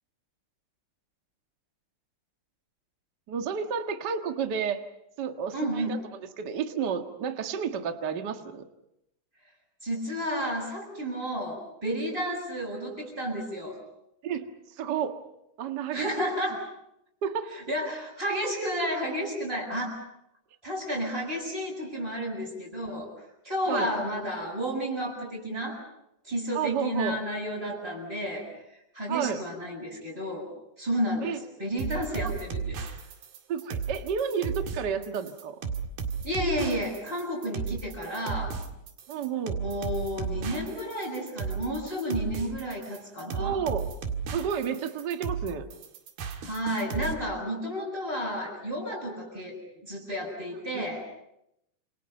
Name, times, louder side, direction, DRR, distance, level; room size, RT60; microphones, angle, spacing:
voice 1, 3.3-4.8 5.2-8.6 14.2-14.5 14.8-15.2 15.6-16.1 17.2-17.5 23.7-23.9 26.5-27.2 29.1-29.4 31.2-31.4 33.5-35.6 39.1-39.6 43.3-43.9 44.3-45.7 50.7-50.9, right 7 dB, 40° right, 5 dB, 1.6 m, -31 dB
voice 2, 5.5-6.0 9.8-13.8 15.9-16.6 17.7-20.0 20.6-23.1 23.4-25.8 26.2-28.5 28.9-30.5 30.8-31.3 31.6-32.8 36.2-38.5 39.6-43.6 46.4-51.1, equal, 5° right, -6 dB, 6.4 m, -31 dB
sound 1, 31.8-47.1, right 6 dB, 90° right, 3.9 m, -34 dB
29.0 x 28.0 x 5.5 m, 0.83 s
omnidirectional pair, 4.1 m